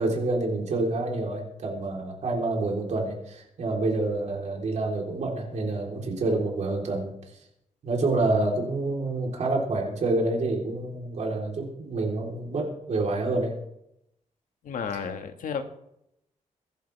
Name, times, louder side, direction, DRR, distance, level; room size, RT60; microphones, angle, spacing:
voice 1, 0.0-7.1 7.8-13.5, right 2 dB, 60° right, -1 dB, 3.7 m, -27 dB
voice 2, 14.6-15.6, left 6 dB, 90° left, 7 dB, 1.7 m, -32 dB
23.5 x 11.5 x 3.4 m, 0.79 s
wide cardioid pair, 145°, 14 cm